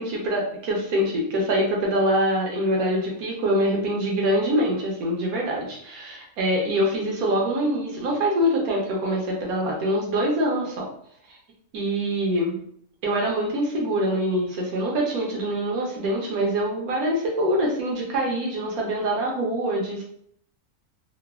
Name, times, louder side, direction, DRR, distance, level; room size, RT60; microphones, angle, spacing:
voice 1, 0.0-10.9 11.7-12.6 13.0-20.0, equal, 75° right, -2 dB, 1.2 m, -24 dB
3.1 x 2.2 x 2.3 m, 0.67 s
omnidirectional pair, 1.6 m